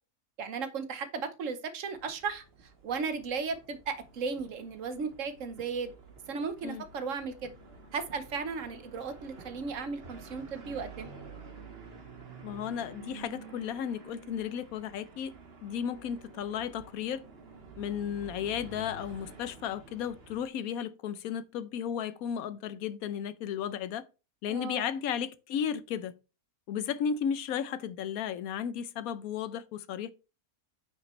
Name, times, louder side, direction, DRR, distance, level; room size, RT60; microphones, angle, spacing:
voice 1, 0.4-2.4 2.8-5.9 6.3-7.5 7.9-11.1 24.5-24.9, right 5 dB, 60° right, 1.3 m, -35 dB
sound 1, 1.9-20.5, right 4 dB, 45° right, 1.5 m, -50 dB
voice 2, 12.4-15.3 15.6-17.2 17.8-24.0 24.4-26.1 26.7-30.1, left 8 dB, 75° left, 1.1 m, -34 dB
9.3 x 5.9 x 3.1 m
omnidirectional pair, 1.6 m